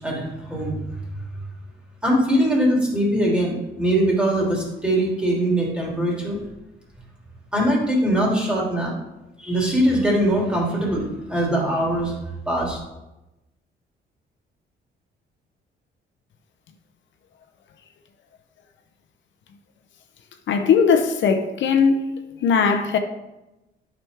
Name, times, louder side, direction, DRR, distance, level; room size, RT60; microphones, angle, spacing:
voice 1, 0.0-0.8 2.0-6.4 7.5-8.9 9.4-12.1 12.5-12.8, right 1 dB, 5° right, 2.9 m, -22 dB
voice 2, 20.5-22.1 22.4-23.0, left 6 dB, 70° left, 0.8 m, -19 dB
8.8 x 6.0 x 3.6 m
cardioid pair, 90°, 20 cm